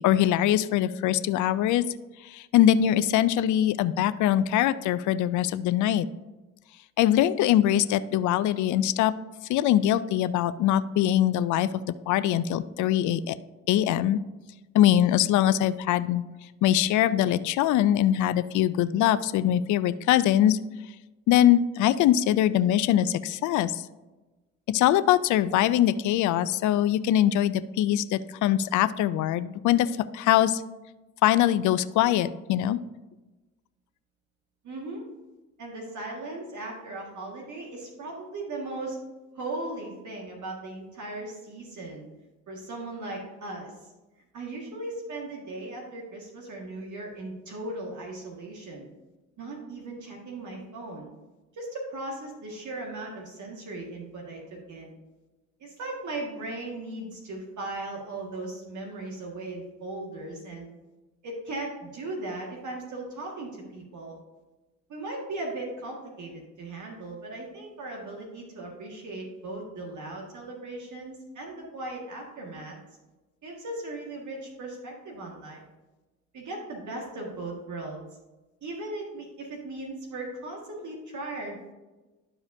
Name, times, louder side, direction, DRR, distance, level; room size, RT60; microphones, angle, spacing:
voice 1, 0.0-1.8 2.2-6.1 7.0-9.1 9.5-13.4 13.7-14.2 14.7-16.2 16.6-20.6 21.3-23.9 24.7-30.6 31.2-32.8, left 12 dB, 55° left, 14 dB, 0.5 m, -23 dB
voice 2, 34.6-35.0 35.6-39.0 39.3-42.1 42.5-43.9 44.3-48.9 49.4-51.1 51.5-54.4 54.7-54.9 55.6-60.7 61.2-64.2 64.9-72.8 73.4-75.6 76.3-78.0 78.6-81.6, right 2 dB, 55° right, -1 dB, 1.9 m, -37 dB
12.0 x 4.8 x 2.7 m, 1.1 s
hypercardioid pair, 55°, 36 cm